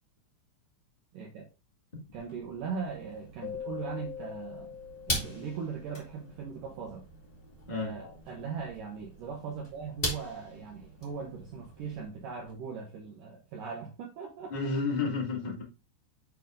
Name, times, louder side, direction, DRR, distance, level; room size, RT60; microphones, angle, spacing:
voice 1, 1.1-1.5 2.1-4.7 5.1-7.1 7.7-14.5, right 6 dB, 80° right, 1.9 m, -39 dB
sound 1, 2.0-12.5, equal, 35° left, 0.8 m, -41 dB
Keyboard (musical), 3.4-6.2, left 8 dB, 80° left, 4.1 m, -42 dB
voice 2, 7.7-8.1 14.5-15.6, left 4 dB, 60° left, 0.4 m, -31 dB
8.0 x 4.8 x 3.8 m
omnidirectional pair, 5.6 m